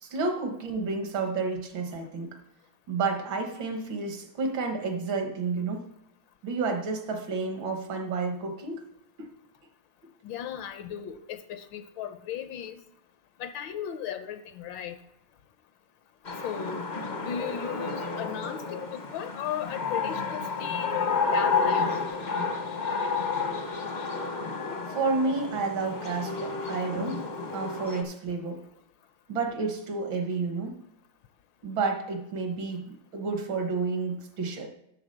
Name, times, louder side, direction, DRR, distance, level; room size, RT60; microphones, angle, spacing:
voice 1, 0.0-2.4 2.9-5.9 6.4-8.9 24.9-27.2 27.5-28.6 29.3-30.8 31.6-34.7, right 4 dB, 75° right, 5 dB, 2.0 m, -30 dB
voice 2, 10.2-12.8 13.4-15.0 16.4-16.9 17.2-22.0, left 9 dB, 80° left, 10 dB, 1.3 m, -36 dB
sound 1, 16.2-28.0, left 4 dB, 45° left, 0.5 m, -31 dB
11.0 x 3.8 x 6.6 m, 0.80 s
omnidirectional pair, 2.1 m